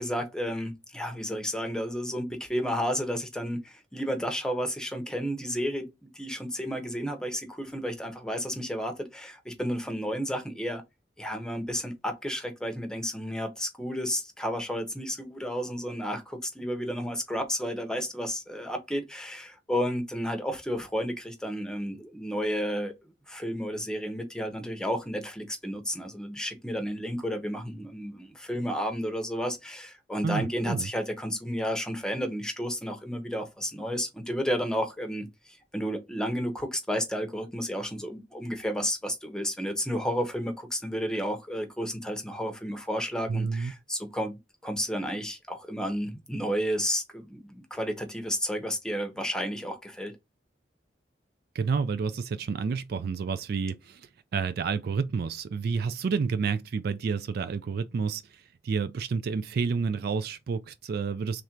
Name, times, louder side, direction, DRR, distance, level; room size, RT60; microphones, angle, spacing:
voice 1, 0.0-5.9 6.1-10.8 11.2-22.9 23.3-50.1, equal, 5° left, 0.7 m, -32 dB
voice 2, 30.2-30.9 43.3-43.7 51.5-61.4, right 5 dB, 60° right, 0.3 m, -30 dB
3.2 x 2.5 x 4.4 m
head